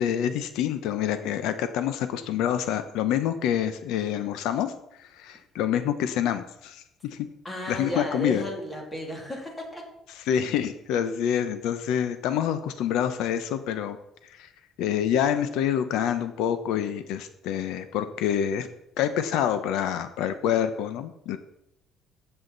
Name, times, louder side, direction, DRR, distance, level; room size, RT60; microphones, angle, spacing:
voice 1, 0.0-4.7 5.0-7.3 7.7-8.4 10.3-14.0 14.4-14.5 14.8-18.7 19.0-21.4, left 9 dB, 85° left, 10 dB, 0.9 m, -27 dB
voice 2, 7.4-9.8, equal, 15° left, 0 dB, 2.6 m, -34 dB
14.5 x 8.0 x 4.1 m, 0.83 s
cardioid pair, 165°, 0 cm